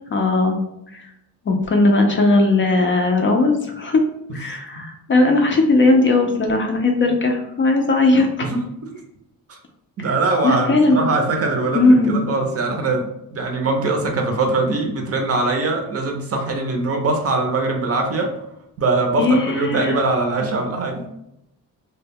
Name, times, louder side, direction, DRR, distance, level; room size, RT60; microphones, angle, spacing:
voice 1, 0.1-0.6 1.5-4.0 4.3-8.5 10.0-10.1 10.4-11.0 11.7-12.2 19.2-20.0, left 2 dB, 35° left, 3 dB, 0.4 m, -17 dB
voice 2, 10.0-18.3 18.8-21.1, right 3 dB, 45° right, 3 dB, 0.5 m, -22 dB
2.2 x 2.1 x 3.4 m, 0.83 s
cardioid pair, 115°, 35 cm